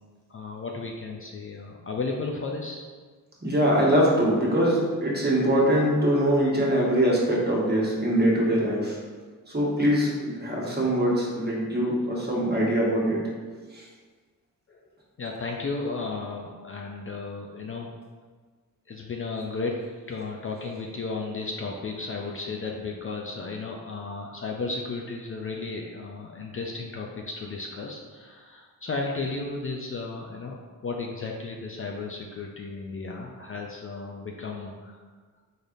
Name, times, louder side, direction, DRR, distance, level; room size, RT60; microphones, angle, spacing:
voice 1, 0.3-2.8 14.7-14.9 15.2-17.9 18.9-35.0, left 3 dB, 40° left, 0 dB, 0.4 m, -34 dB
voice 2, 3.4-9.0 9.5-13.2 13.7-13.8, equal, 25° right, -4 dB, 1.2 m, -23 dB
4.0 x 3.3 x 2.5 m, 1.5 s
cardioid pair, 60°, 36 cm